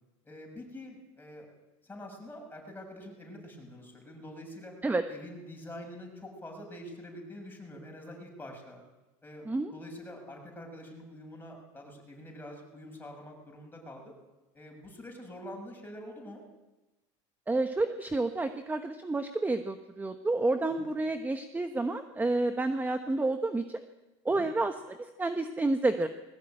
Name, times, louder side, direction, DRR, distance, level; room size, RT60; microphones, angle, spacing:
voice 1, 0.2-1.5 1.8-4.7 5.1-8.8 9.2-9.5 9.7-14.1 14.5-16.4 20.7-20.9 24.3-24.5, left 1 dB, 10° left, 1 dB, 7.0 m, -46 dB
voice 2, 17.5-23.8 24.2-26.1, right 2 dB, 10° right, 8 dB, 1.2 m, -30 dB
21.0 x 16.5 x 9.0 m, 1.1 s
supercardioid pair, 110°, 17 cm